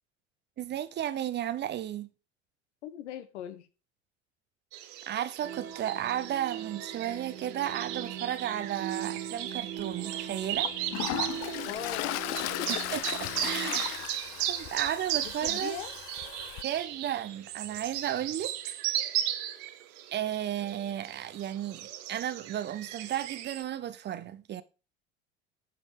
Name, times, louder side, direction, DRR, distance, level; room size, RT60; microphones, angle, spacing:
voice 1, 0.6-2.1 5.1-10.7 12.9-13.0 13.4-14.0 14.4-15.8 16.6-18.6 20.1-24.6, right 11 dB, 30° right, 0.6 m, -34 dB
voice 2, 2.8-3.7 11.7-12.1 12.6-12.8 13.4-13.9 15.2-15.9, left 10 dB, 70° left, 1.1 m, -40 dB
sound 1, 4.7-23.6, right 12 dB, 55° right, 1.1 m, -36 dB
sound 2, 5.4-13.7, right 10 dB, 70° right, 1.7 m, -41 dB
Toilet flush, 9.8-9.9 10.4-16.6, left 17 dB, 45° left, 0.6 m, -36 dB
9.3 x 5.4 x 4.8 m
figure-of-eight pair, 70°, 35 cm